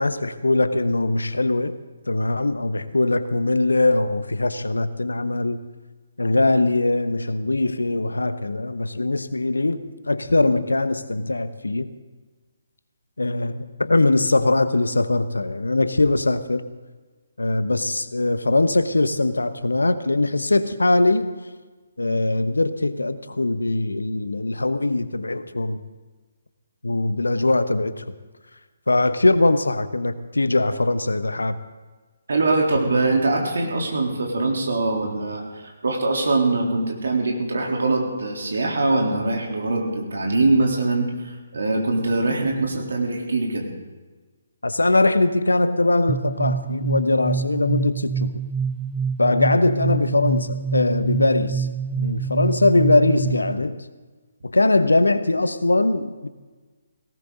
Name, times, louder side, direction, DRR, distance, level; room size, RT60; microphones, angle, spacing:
voice 1, 0.0-1.8 2.1-5.6 6.2-11.9 13.2-16.6 17.4-21.3 22.0-25.8 26.8-28.0 28.9-31.6 44.6-48.3 49.2-53.8 54.4-56.3, left 2 dB, 75° left, 12 dB, 1.0 m, -21 dB
voice 2, 32.3-43.7, right 2 dB, 65° right, 0 dB, 3.7 m, -23 dB
sound 1, 46.1-53.6, right 6 dB, 20° right, 0.6 m, -27 dB
18.5 x 18.0 x 4.0 m, 1.3 s
figure-of-eight pair, 140°, 0 cm